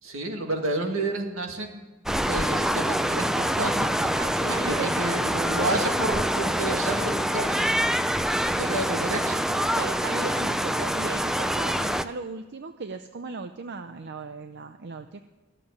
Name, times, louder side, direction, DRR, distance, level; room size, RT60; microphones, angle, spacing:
voice 1, 0.0-1.9 2.3-7.7 8.6-9.6, right 2 dB, 90° right, 3 dB, 2.1 m, -30 dB
sound 1, 2.1-12.0, equal, ahead, 0.4 m, -25 dB
voice 2, 4.2-4.9 9.8-15.2, right 4 dB, 55° right, 8 dB, 0.6 m, -37 dB
13.5 x 7.7 x 9.7 m, 1.2 s
head